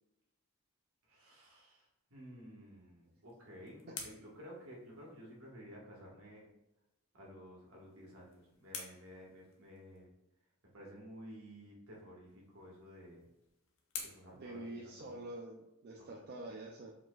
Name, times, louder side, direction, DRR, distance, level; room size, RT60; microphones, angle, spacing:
voice 1, 1.1-1.8 2.1-6.5 7.1-10.1 10.7-13.3 14.1-15.2 16.0-16.2, equal, 70° right, -4 dB, 1.5 m, -53 dB
sound 1, 3.0-5.5 7.6-10.1 12.3-15.4, left 5 dB, 65° left, 0.9 m, -52 dB
voice 2, 14.3-17.0, right 2 dB, 45° right, 0 dB, 0.4 m, -46 dB
4.9 x 3.8 x 2.3 m, 0.93 s
head